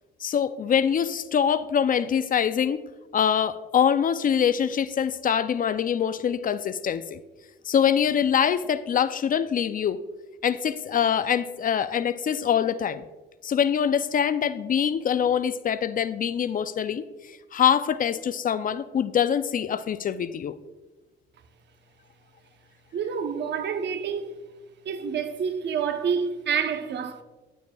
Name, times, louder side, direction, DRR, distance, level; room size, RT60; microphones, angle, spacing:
voice 1, 0.2-2.8 3.1-7.2 7.7-10.0 10.4-13.0 13.4-17.0 17.5-20.5, left 8 dB, 45° left, 0.4 m, -24 dB
voice 2, 22.9-24.4 24.8-27.2, right 6 dB, 60° right, 0.8 m, -28 dB
9.8 x 9.1 x 2.3 m
cardioid pair, 90°, 20 cm